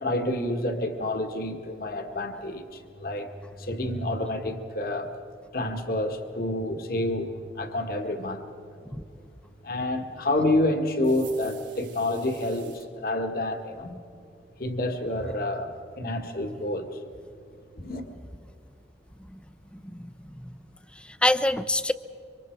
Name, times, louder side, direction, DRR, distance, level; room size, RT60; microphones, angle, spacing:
voice 1, 0.0-3.3 3.6-5.1 5.5-8.5 9.6-14.0 14.6-17.0 17.7-18.1, left 1 dB, 50° left, 1.7 m, -28 dB
sound 1, 11.0-12.9, right 11 dB, 90° right, 3.1 m, -49 dB
voice 2, 19.7-20.5 21.0-21.9, left 1 dB, 5° left, 0.6 m, -27 dB
27.0 x 25.0 x 4.6 m
head